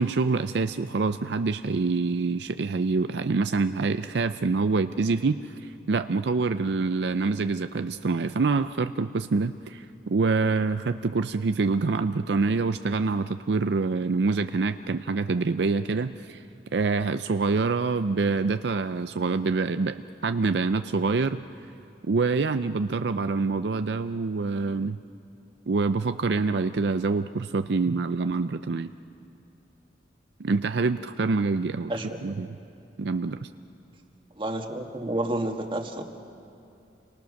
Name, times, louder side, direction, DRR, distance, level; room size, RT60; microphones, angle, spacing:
voice 1, 0.0-16.4 16.7-21.4 22.1-25.0 25.7-28.9 30.4-31.9 32.2-32.6 33.0-33.5, right 4 dB, 70° right, 10 dB, 0.5 m, -26 dB
voice 2, 31.9-32.4 34.4-36.0, right 1 dB, 30° right, 3 dB, 1.8 m, -30 dB
29.0 x 24.0 x 6.5 m, 2.6 s
head